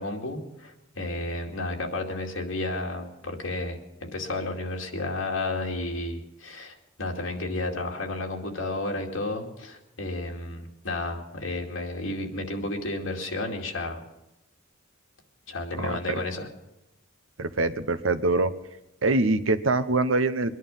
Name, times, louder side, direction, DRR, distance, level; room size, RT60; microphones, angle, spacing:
voice 1, 0.0-14.0 15.5-16.5, left 2 dB, 75° left, 1 dB, 2.5 m, -32 dB
voice 2, 17.4-18.5 19.0-20.5, right 2 dB, 80° right, 12 dB, 1.0 m, -24 dB
23.0 x 11.0 x 5.5 m, 0.90 s
head